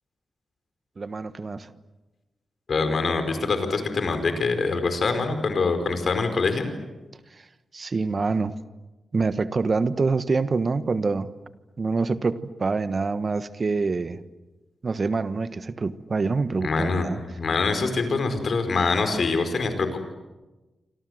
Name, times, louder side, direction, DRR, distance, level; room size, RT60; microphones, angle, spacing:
voice 1, 1.0-1.7 7.7-8.5 9.1-11.3 11.8-14.2 14.8-17.2, right 4 dB, 45° right, 13 dB, 1.4 m, -26 dB
voice 2, 2.7-6.7 16.6-20.0, left 4 dB, 60° left, 8 dB, 4.9 m, -24 dB
28.5 x 26.0 x 8.0 m, 1.1 s
cardioid pair, 55°, 0 cm